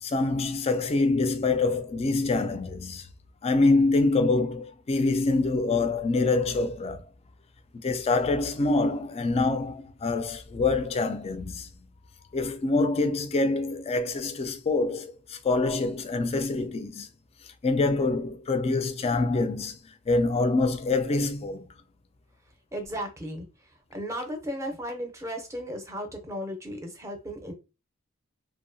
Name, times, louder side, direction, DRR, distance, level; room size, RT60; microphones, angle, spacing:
voice 1, 0.0-3.1 3.4-7.0 7.7-11.7 12.3-17.1 17.6-19.8 20.1-21.7, left 3 dB, 30° left, 0.3 m, -25 dB
voice 2, 22.7-23.5 23.9-27.5, equal, 15° right, 0.6 m, -35 dB
2.6 x 2.1 x 2.6 m
head